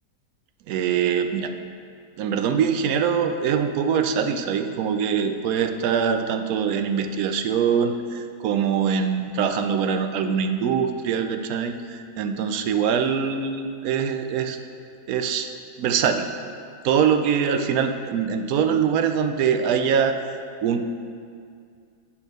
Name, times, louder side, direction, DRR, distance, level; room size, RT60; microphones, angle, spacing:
voice 1, 0.7-1.5 2.2-14.6 15.1-15.5 15.8-16.3 16.8-20.2 20.6-20.8, right 7 dB, 70° right, 7 dB, 0.9 m, -23 dB
8.7 x 4.3 x 6.5 m, 2.2 s
omnidirectional pair, 1.8 m